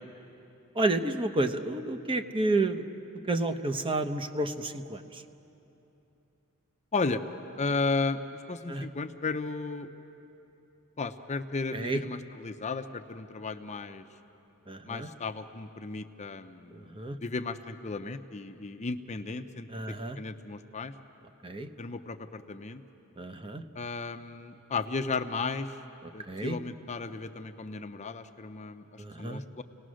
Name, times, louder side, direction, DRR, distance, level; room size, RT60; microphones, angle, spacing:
voice 1, 0.7-2.9 3.3-5.2 8.7-8.8 11.7-12.0 14.7-15.1 16.8-17.2 19.7-20.2 21.4-21.7 23.2-23.6 26.0-26.6 29.0-29.4, right 2 dB, 25° right, 8 dB, 0.8 m, -30 dB
voice 2, 7.6-8.2 8.5-9.9 11.0-14.0 14.9-16.9 17.2-19.7 20.2-20.9 21.8-22.8 23.8-25.8 26.1-29.6, left 3 dB, 30° left, 9 dB, 0.7 m, -34 dB
30.0 x 18.5 x 6.3 m, 2.9 s
head